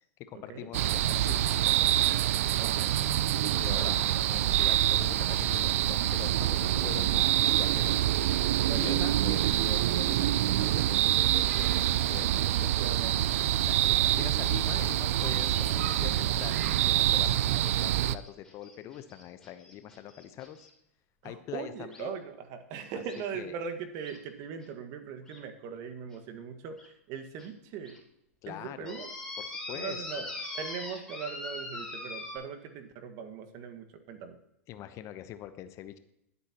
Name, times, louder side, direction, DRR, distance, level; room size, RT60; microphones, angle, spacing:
voice 1, 0.3-2.1 3.4-12.7 13.6-20.7 21.2-22.1 22.9-23.0 23.3-23.5 28.4-29.0 29.4-30.4 34.7-36.0, left 11 dB, 40° left, 11 dB, 0.9 m, -44 dB
sound 1, 0.7-18.2, right 13 dB, 65° right, 0.5 m, -26 dB
voice 2, 2.6-3.1 3.4-4.3 8.7-9.0 12.8-13.4 21.2-28.0 28.5-29.1 29.7-30.3 30.5-34.4, right 6 dB, 45° right, 8 dB, 1.7 m, -40 dB
sound 2, 15.7-20.7 21.9-22.0 23.1-23.2 24.0-24.2 24.6-24.7 25.3-25.4 26.1-26.2 26.8-26.9 27.4-27.5 27.8-28.0 28.9-32.4, left 2 dB, 5° left, 3.4 m, -42 dB
21.5 x 8.3 x 3.0 m, 0.78 s
hypercardioid pair, 100°, 8 cm